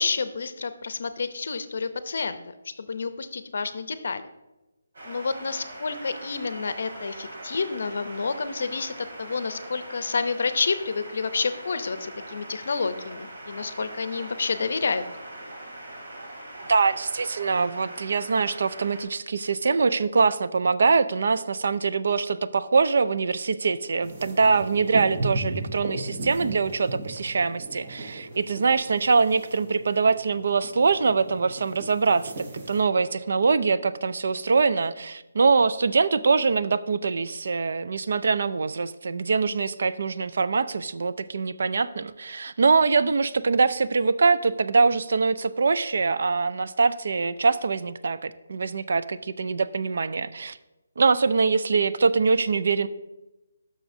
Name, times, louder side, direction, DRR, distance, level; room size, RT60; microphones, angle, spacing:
voice 1, 0.0-2.4 2.8-4.2 5.1-15.0, left 4 dB, 55° left, 11 dB, 0.6 m, -29 dB
sound 1, 4.9-19.0, right 1 dB, 70° right, 2.6 m, -42 dB
voice 2, 16.6-50.6 51.0-52.9, right 4 dB, 55° right, 14 dB, 0.3 m, -23 dB
sound 2, 24.0-32.8, right 2 dB, 30° right, 0.9 m, -36 dB
11.0 x 6.1 x 2.6 m, 1.0 s
hypercardioid pair, 175°, 0 cm